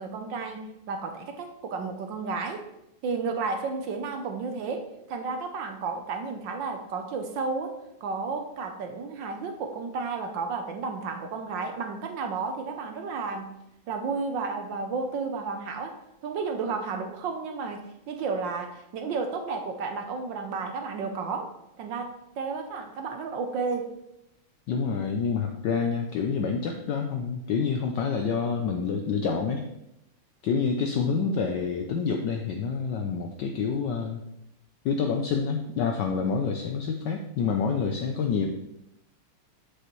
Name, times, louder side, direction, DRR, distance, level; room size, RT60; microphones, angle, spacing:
voice 1, 0.0-2.6 3.0-7.7 8.0-13.6 13.9-23.9 30.9-31.4, right 4 dB, 65° right, 5 dB, 1.3 m, -32 dB
voice 2, 24.7-29.6 30.4-34.2 34.8-38.5, left 5 dB, 70° left, 3 dB, 1.1 m, -27 dB
7.5 x 6.5 x 3.1 m, 0.84 s
omnidirectional pair, 2.4 m